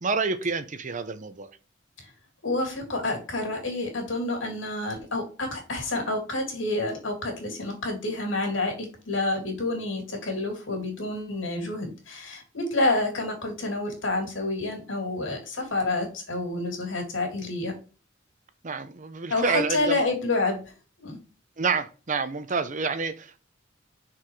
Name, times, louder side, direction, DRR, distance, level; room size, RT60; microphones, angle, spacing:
voice 1, 0.0-1.5 18.6-20.1 21.6-23.4, right 4 dB, 40° right, 0.7 m, -28 dB
voice 2, 2.4-17.7 19.3-20.6 21.0-21.2, left 2 dB, 75° left, 3.0 m, -28 dB
6.0 x 4.8 x 4.8 m
head